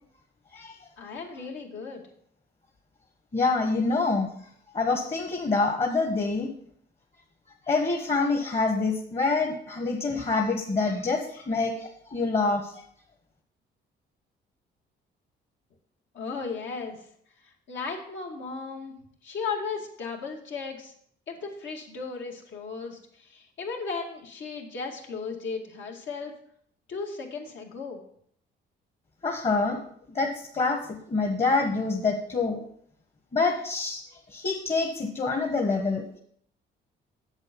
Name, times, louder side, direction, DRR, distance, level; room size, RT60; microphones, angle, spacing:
voice 1, 1.0-2.0 16.1-17.0 17.7-19.0 19.2-20.9 21.3-26.3 26.9-28.0, left 4 dB, 70° left, 1 dB, 2.3 m, -35 dB
voice 2, 3.3-4.3 4.7-6.5 7.7-12.8 29.2-29.8 30.1-30.8 31.1-32.6 33.3-34.0 34.3-36.2, left 3 dB, 30° left, 2 dB, 1.4 m, -26 dB
8.1 x 7.8 x 5.4 m, 0.65 s
cardioid pair, 90°, 20 cm